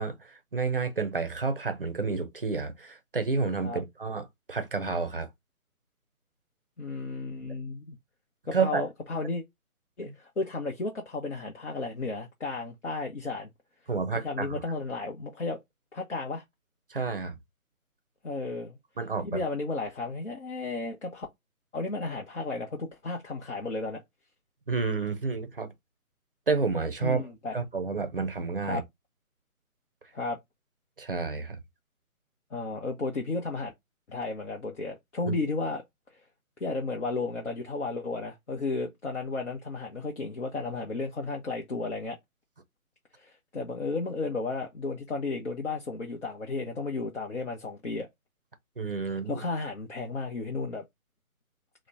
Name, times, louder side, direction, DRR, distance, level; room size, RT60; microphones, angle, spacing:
voice 1, 0.0-5.3 8.5-8.9 10.1-10.2 13.9-14.6 16.9-17.3 19.0-19.4 24.7-25.7 26.5-27.2 27.5-28.8 31.0-31.6 35.3-35.4 48.8-49.4, right 4 dB, 40° right, 0.5 m, -30 dB
voice 2, 6.8-8.0 8.5-9.4 10.0-13.5 14.2-15.6 15.9-16.4 18.2-18.8 19.2-21.3 21.7-24.0 27.0-27.6 28.7-28.8 30.1-30.4 32.5-33.7 34.1-35.8 36.6-42.2 43.2-48.1 49.0-50.8, left 3 dB, 55° left, 0.8 m, -33 dB
3.0 x 2.0 x 3.7 m
figure-of-eight pair, 145°, 43 cm